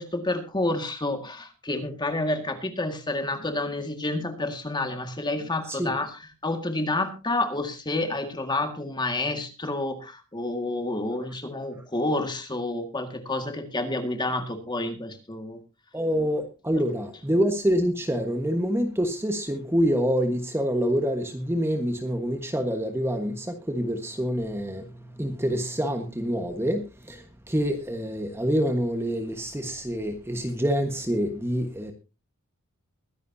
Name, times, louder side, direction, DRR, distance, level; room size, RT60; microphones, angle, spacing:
voice 1, 0.0-6.1 6.4-15.6, left 2 dB, 20° left, 1.9 m, -29 dB
voice 2, 15.9-31.9, equal, 10° right, 1.4 m, -26 dB
22.5 x 10.5 x 2.8 m
head